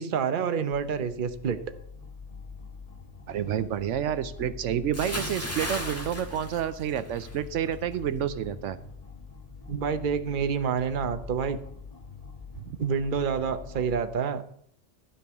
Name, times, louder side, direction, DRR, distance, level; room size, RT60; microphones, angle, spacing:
voice 1, 0.0-1.6 9.7-11.6 12.8-14.4, right 6 dB, 50° right, 10 dB, 0.9 m, -28 dB
sound 1, 0.7-14.2, left 5 dB, 30° left, 1.4 m, -44 dB
voice 2, 3.3-8.8, right 9 dB, 80° right, 13 dB, 1.0 m, -29 dB
Bathtub (filling or washing) / Splash splatter, 4.9-7.4 7.7-8.0, left 1 dB, 10° left, 1.7 m, -35 dB
12.5 x 5.3 x 8.2 m, 0.68 s
omnidirectional pair, 1.2 m